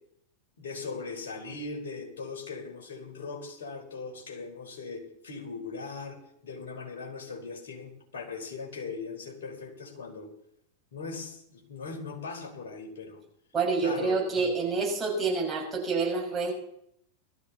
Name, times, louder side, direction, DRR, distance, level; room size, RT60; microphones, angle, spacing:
voice 1, 0.6-10.3 10.9-13.2 13.8-14.6, left 4 dB, 60° left, 1 dB, 4.2 m, -39 dB
voice 2, 13.5-16.5, right 4 dB, 20° right, -2 dB, 5.7 m, -28 dB
19.5 x 13.5 x 4.1 m, 0.74 s
figure-of-eight pair, 90°, 0 cm